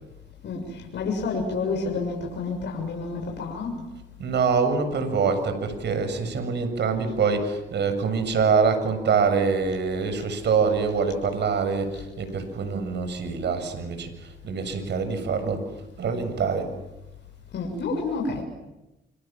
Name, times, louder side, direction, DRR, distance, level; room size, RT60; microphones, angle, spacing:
voice 1, 0.9-3.7 17.5-18.4, left 4 dB, 60° left, 1 dB, 6.9 m, -29 dB
voice 2, 4.2-15.6 16.0-16.7, right 5 dB, 60° right, 8 dB, 7.3 m, -25 dB
28.5 x 27.0 x 7.5 m, 0.97 s
cardioid pair, 90°, 20 cm